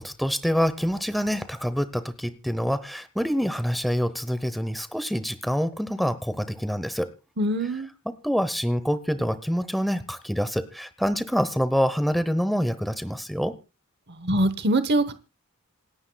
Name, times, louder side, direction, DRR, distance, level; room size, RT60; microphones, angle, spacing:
voice 1, 0.0-7.1 8.0-13.5, equal, ahead, 13 dB, 0.8 m, -26 dB
voice 2, 7.4-7.9 14.2-15.1, right 1 dB, 50° right, 12 dB, 1.0 m, -23 dB
27.5 x 9.5 x 2.3 m, 0.31 s
head